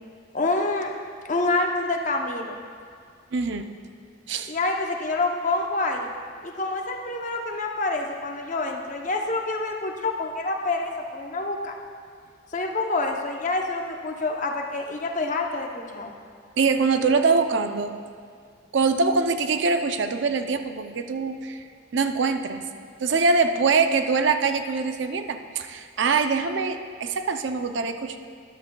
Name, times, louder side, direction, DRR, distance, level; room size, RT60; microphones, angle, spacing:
voice 1, 0.3-0.9 1.3-2.6 4.5-6.1 6.4-11.8 12.5-16.2, left 2 dB, 40° left, 2 dB, 0.7 m, -27 dB
voice 2, 3.3-3.7 4.3-4.5 16.6-17.9 18.7-21.6 21.9-22.6 23.0-28.2, right 4 dB, 65° right, 7 dB, 0.5 m, -23 dB
13.0 x 11.0 x 2.3 m, 2.2 s
head